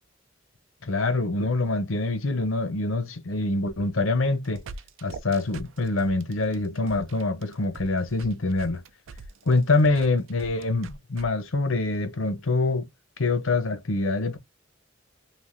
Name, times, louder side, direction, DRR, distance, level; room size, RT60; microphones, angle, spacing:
voice 1, 0.8-4.6 5.0-8.8 9.5-12.9 13.2-14.4, left 2 dB, 75° left, 0.7 m, -25 dB
sound 1, 4.2-11.3, right 4 dB, 70° right, 0.5 m, -43 dB
3.4 x 2.6 x 2.5 m
head